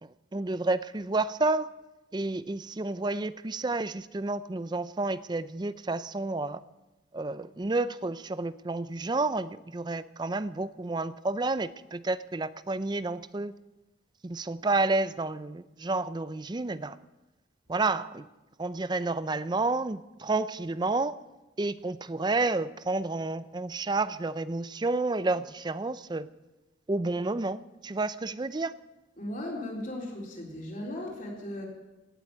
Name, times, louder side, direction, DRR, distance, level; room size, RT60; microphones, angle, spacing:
voice 1, 0.0-1.7 2.1-6.6 7.1-13.6 14.2-17.0 17.7-18.3 18.6-21.2 21.6-26.3 26.9-28.7, right 3 dB, 25° right, 15 dB, 0.5 m, -30 dB
voice 2, 29.2-31.7, left 1 dB, 45° left, -2 dB, 4.2 m, -37 dB
17.5 x 8.0 x 8.6 m, 1.0 s
head